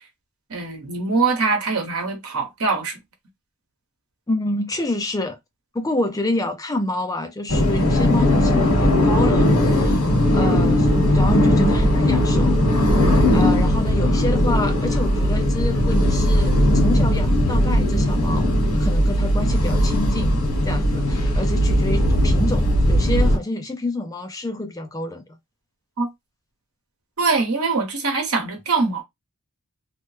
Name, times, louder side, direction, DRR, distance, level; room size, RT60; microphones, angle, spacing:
voice 1, 0.5-3.0 26.0-26.1 27.2-29.0, right 4 dB, 70° right, 1.1 m, -23 dB
voice 2, 4.3-5.4 5.7-10.1 10.3-10.9 11.1-12.6 13.0-20.4 20.6-25.2, left 2 dB, 15° left, 0.4 m, -28 dB
sound 1, 7.5-23.4, left 1 dB, 90° left, 1.4 m, -18 dB
3.1 x 2.1 x 3.2 m
head